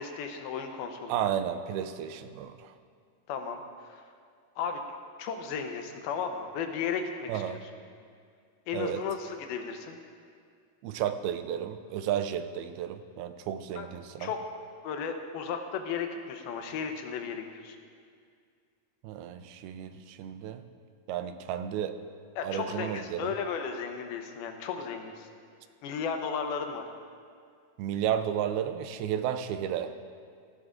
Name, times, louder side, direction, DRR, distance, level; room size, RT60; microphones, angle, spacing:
voice 1, 0.0-1.1 3.3-4.0 4.6-4.8 5.2-7.6 8.7-10.0 13.8-13.9 14.2-14.4 14.8-17.8 22.4-25.3 25.8-26.8, left 6 dB, 85° left, 5 dB, 2.7 m, -35 dB
voice 2, 1.1-2.7 7.3-7.6 8.7-9.0 10.8-14.3 19.0-20.6 21.1-21.9 22.4-23.3 27.8-29.9, right 9 dB, 85° right, 9 dB, 2.6 m, -32 dB
17.0 x 16.5 x 2.5 m, 2.2 s
omnidirectional pair, 4.3 m